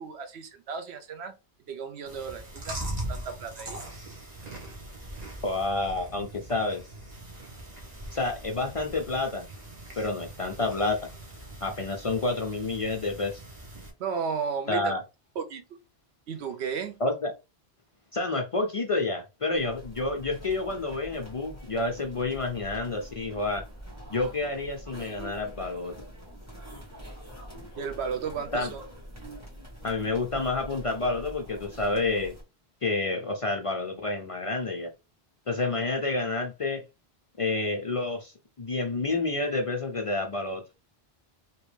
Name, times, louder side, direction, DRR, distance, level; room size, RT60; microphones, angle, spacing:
voice 1, 0.0-1.3 1.7-3.8 14.0-15.0 15.4-15.6 16.3-17.0 27.8-28.8, right 6 dB, 90° right, 1.0 m, -34 dB
Chewing mastication, 2.1-13.9, right 1 dB, 40° right, 1.1 m, -41 dB
voice 2, 5.4-6.8 8.1-9.5 10.0-11.0 11.6-13.4 14.7-15.0 17.0-17.3 18.1-23.6 24.1-25.9 28.5-28.7 29.8-32.3 32.8-34.9 35.5-36.8 37.4-40.6, left 3 dB, 50° left, 0.4 m, -29 dB
sound 1, 19.5-32.4, right 1 dB, 15° right, 1.4 m, -45 dB
2.9 x 2.9 x 3.2 m
omnidirectional pair, 1.1 m